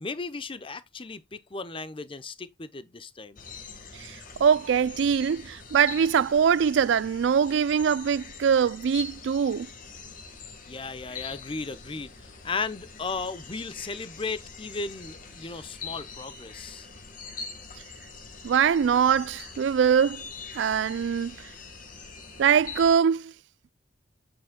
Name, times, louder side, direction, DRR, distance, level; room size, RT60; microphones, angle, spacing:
voice 1, 0.0-3.4 10.6-16.9, left 4 dB, 30° left, 0.7 m, -36 dB
sound 1, 3.4-23.0, left 4 dB, 45° left, 1.6 m, -43 dB
voice 2, 3.9-9.7 18.4-20.2 20.5-21.4 22.4-23.3, right 7 dB, 65° right, 0.3 m, -23 dB
8.5 x 7.8 x 2.2 m
head